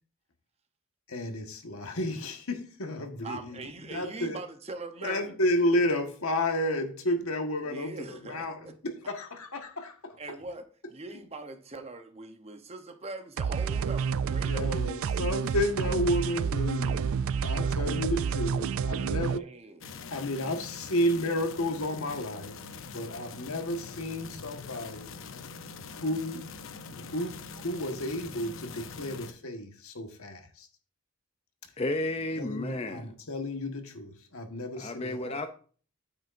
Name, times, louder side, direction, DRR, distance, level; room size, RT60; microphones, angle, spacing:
voice 1, 1.1-3.6 3.9-4.4 5.0-10.2 14.5-19.4 20.1-22.6 22.9-25.1 25.9-26.5 27.1-30.7 32.4-35.5, left 1 dB, 85° left, 1.5 m, -32 dB
voice 2, 3.2-5.6 7.7-8.7 10.2-14.8 17.5-17.7 18.9-19.8, right 3 dB, 30° right, 0.9 m, -42 dB
sound 1, 13.4-19.4, right 6 dB, 75° right, 0.3 m, -29 dB
sound 2, 19.8-29.3, left 5 dB, 65° left, 0.7 m, -44 dB
voice 3, 31.8-33.1 34.8-35.5, left 2 dB, 30° left, 0.5 m, -32 dB
9.1 x 8.0 x 2.6 m
head